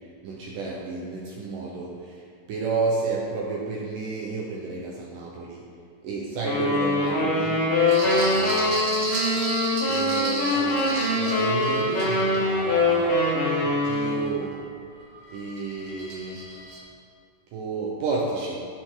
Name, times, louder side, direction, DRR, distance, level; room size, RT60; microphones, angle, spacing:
voice 1, 0.2-2.2 2.5-5.6 6.0-7.6 8.0-8.8 9.2-9.4 9.9-14.6 15.3-16.5 17.5-18.7, right 3 dB, 70° right, -3 dB, 2.1 m, -31 dB
sound 1, 6.4-14.4, left 2 dB, 55° left, 4.3 m, -23 dB
sound 2, 7.9-14.6 15.0-16.8, right 1 dB, 50° right, 2.0 m, -34 dB
16.0 x 6.1 x 3.8 m, 2.2 s
omnidirectional pair, 4.7 m